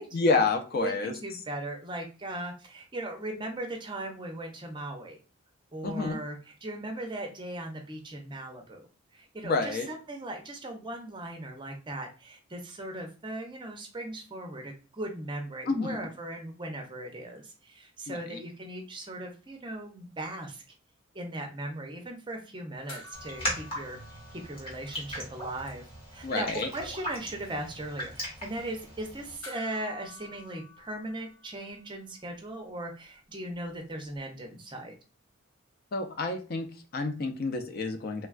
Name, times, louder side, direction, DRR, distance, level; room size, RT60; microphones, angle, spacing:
voice 1, 0.1-1.1 5.8-6.2 9.4-9.9 15.7-16.0 18.1-18.4 26.2-26.7 35.9-38.3, left 3 dB, 45° left, 6 dB, 0.4 m, -29 dB
voice 2, 0.8-5.2 5.7-8.9 9.1-20.6 21.1-24.0 24.3-25.8 26.1-35.0, right 1 dB, 20° right, 3 dB, 0.5 m, -38 dB
sound 1, 22.9-25.5 25.8-25.9 29.4-32.0 34.2-34.3, left 3 dB, 80° left, 1.2 m, -50 dB
Raindrop, 23.1-29.4, equal, 25° left, 1.1 m, -38 dB
3.2 x 2.2 x 2.3 m, 0.35 s
head